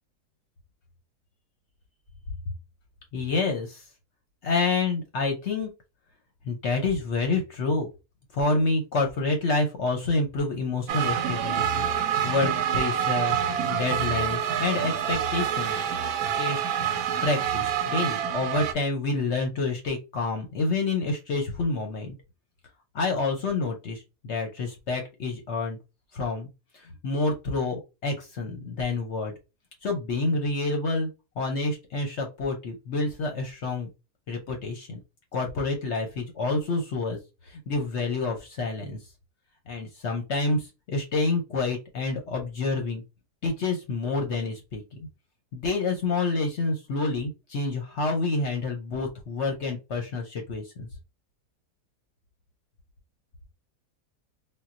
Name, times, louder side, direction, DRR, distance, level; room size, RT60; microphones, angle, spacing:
voice 1, 3.1-3.8 4.4-5.7 6.5-7.9 8.3-13.4 13.7-15.7 16.4-16.6 17.2-22.1 22.9-25.8 26.1-26.5 26.7-29.3 29.8-31.1 31.4-33.9 34.3-35.0 35.3-37.2 37.5-39.0 39.7-43.0 43.4-44.8 45.5-50.9, left 3 dB, 60° left, 3 dB, 0.8 m, -28 dB
sound 1, 10.9-18.7, right 9 dB, 70° right, 1.0 m, -27 dB
3.7 x 2.2 x 2.5 m, 0.26 s
omnidirectional pair, 1.7 m